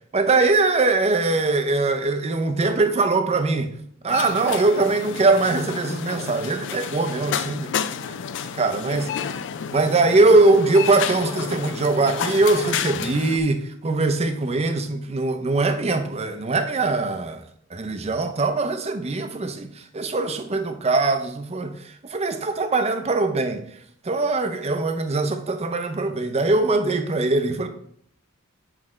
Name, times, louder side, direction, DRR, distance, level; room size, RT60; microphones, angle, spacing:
voice 1, 0.1-3.7 4.0-7.7 8.1-8.3 8.5-9.1 9.7-17.4 17.7-23.6 24.0-27.7, right 3 dB, 30° right, 0.6 m, -21 dB
sound 1, 4.1-13.4, left 7 dB, 60° left, 0.4 m, -30 dB
7.4 x 4.8 x 3.2 m
head